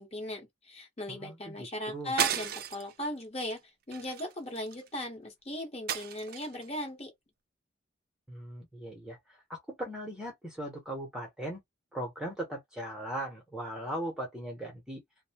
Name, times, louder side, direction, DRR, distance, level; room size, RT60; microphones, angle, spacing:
voice 1, 0.0-3.6 3.9-7.1, left 1 dB, 30° left, 1.0 m, -38 dB
voice 2, 1.1-2.1 8.3-9.2 9.5-11.6 11.9-15.0, right 1 dB, 5° right, 0.8 m, -39 dB
sound 1, 2.2-2.9 3.4-3.6 3.9-4.9 5.9-6.6, right 8 dB, 45° right, 0.4 m, -33 dB
2.6 x 2.1 x 2.8 m
head